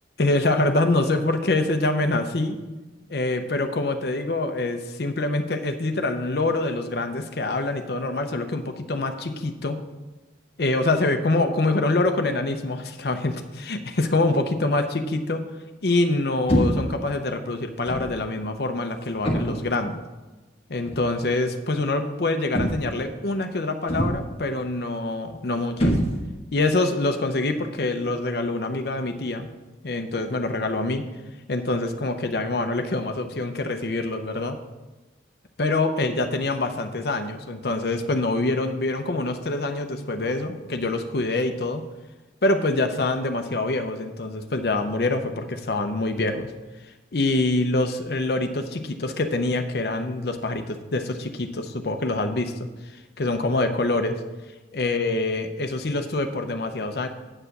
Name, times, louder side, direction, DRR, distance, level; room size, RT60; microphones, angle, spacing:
voice 1, 0.2-2.6 3.1-9.8 10.6-15.5 15.8-20.0 20.7-26.0 26.5-29.5 29.8-31.1 31.5-34.6 35.6-41.8 42.4-46.5 47.1-54.2 54.7-57.1, left 2 dB, 60° left, 6 dB, 0.7 m, -25 dB
sound 1, 16.5-17.0 17.9-18.2 19.2-19.7 20.8-21.1 22.5-23.0 23.9-24.4 25.8-26.5, equal, 35° left, 1.2 m, -24 dB
8.7 x 4.9 x 6.6 m, 1.1 s
head